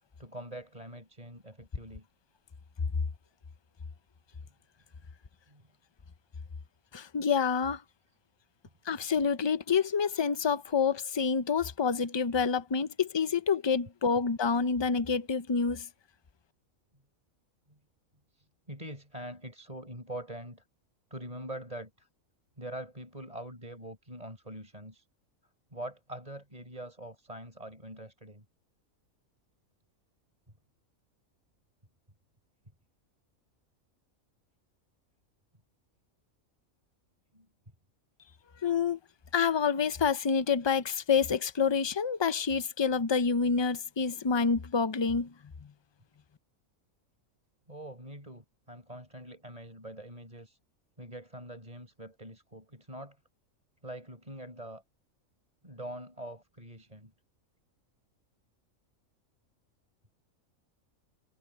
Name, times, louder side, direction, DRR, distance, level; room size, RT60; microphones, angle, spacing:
voice 1, 0.2-2.1 4.4-4.5 5.5-5.7 17.7-17.8 18.3-20.6 21.1-22.1 22.6-25.1 25.7-28.5 37.3-37.5 47.7-50.6 51.0-53.2 53.8-54.8 55.6-57.1, right 1 dB, 25° right, 5.5 m, -44 dB
voice 2, 6.9-7.8 8.9-15.9 38.6-39.0 39.3-45.3, left 6 dB, 35° left, 0.4 m, -28 dB
omnidirectional pair, 1.4 m